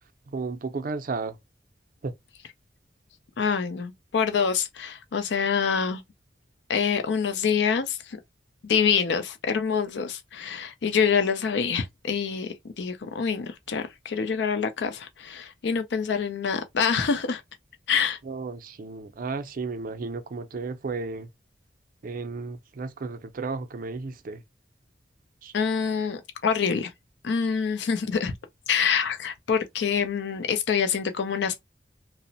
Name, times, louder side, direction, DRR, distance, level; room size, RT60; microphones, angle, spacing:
voice 1, 0.3-1.4 2.0-2.1 18.3-21.3 22.0-24.4 25.4-25.5, right 4 dB, 50° right, 0.4 m, -33 dB
voice 2, 3.4-6.0 6.7-8.2 8.6-17.4 17.9-18.2 25.5-26.9 27.2-28.3 28.7-31.6, left 6 dB, 75° left, 0.4 m, -26 dB
2.9 x 2.0 x 2.6 m
head